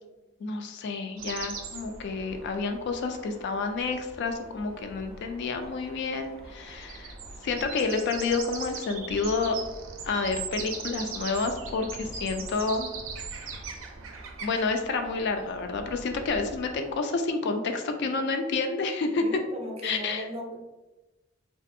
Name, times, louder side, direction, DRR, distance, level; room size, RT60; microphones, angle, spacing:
voice 1, 0.4-7.1 7.4-9.6 10.0-12.9 14.4-19.2 19.8-20.2, left 4 dB, 60° left, 6 dB, 0.3 m, -29 dB
sound 1, 1.2-16.9, right 4 dB, 85° right, 0.4 m, -41 dB
voice 2, 19.2-20.6, equal, 30° right, 1 dB, 0.4 m, -37 dB
2.5 x 2.4 x 2.6 m, 1.1 s
head